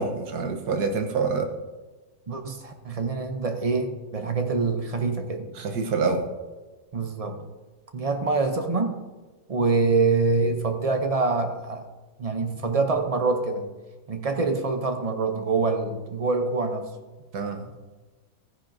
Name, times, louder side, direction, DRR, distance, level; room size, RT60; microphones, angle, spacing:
voice 1, 0.0-1.6 5.5-6.3 17.3-17.7, right 4 dB, 80° right, 5 dB, 1.5 m, -26 dB
voice 2, 2.3-5.5 6.9-7.4 7.9-9.0 9.5-11.9 12.2-13.7 14.1-16.9, right 3 dB, 45° right, 6 dB, 0.4 m, -25 dB
15.0 x 9.8 x 2.6 m, 1.3 s
omnidirectional pair, 1.7 m